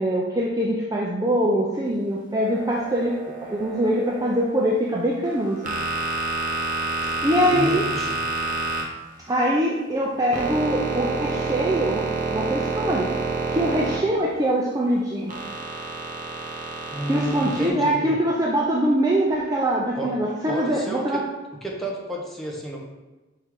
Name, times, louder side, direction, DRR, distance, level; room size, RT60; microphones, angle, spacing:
voice 1, 0.0-3.2 3.4-5.6 7.2-7.8 9.3-13.1 13.5-15.3 17.1-21.2, right 1 dB, 20° right, -3 dB, 0.5 m, -23 dB
sound 1, 2.4-4.4 5.2-9.5 9.9-14.5 15.3-17.7, right 3 dB, 40° right, 0.8 m, -29 dB
voice 2, 7.4-8.2 16.9-18.1 20.0-20.1 20.5-21.2 21.6-22.8, right 1 dB, ahead, -3 dB, 1.0 m, -31 dB
5.4 x 3.8 x 4.6 m, 1.1 s
head